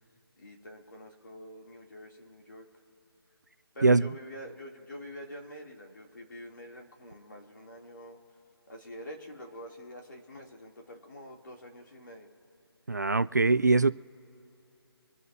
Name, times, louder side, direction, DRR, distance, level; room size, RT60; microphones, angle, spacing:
voice 1, 0.4-2.7 3.7-8.2 8.7-12.3, equal, 50° left, 2.6 m, -46 dB
voice 2, 3.8-4.1 12.9-13.9, right 3 dB, 45° right, 0.3 m, -22 dB
25.5 x 9.5 x 2.7 m
hypercardioid pair, 180°, 13 cm